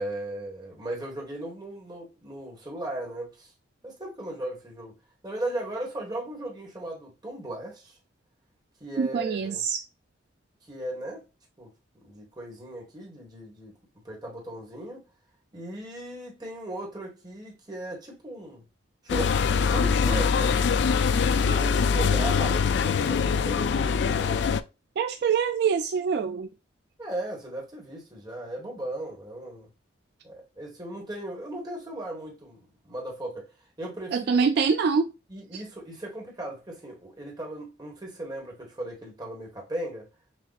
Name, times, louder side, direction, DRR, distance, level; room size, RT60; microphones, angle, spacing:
voice 1, 0.0-3.5 3.8-5.0 5.2-8.0 8.8-9.6 10.7-11.2 11.6-11.7 12.0-13.7 14.0-15.0 15.5-18.6 19.0-20.7 21.4-24.5 27.0-29.7 30.2-33.5 33.8-34.4 35.3-40.1, right 1 dB, 20° right, 1.4 m, -37 dB
voice 2, 9.0-9.8 25.0-26.5 34.1-35.1, right 6 dB, 55° right, 0.3 m, -24 dB
sound 1, 19.1-24.6, left 6 dB, 60° left, 0.3 m, -23 dB
6.5 x 2.5 x 2.3 m
head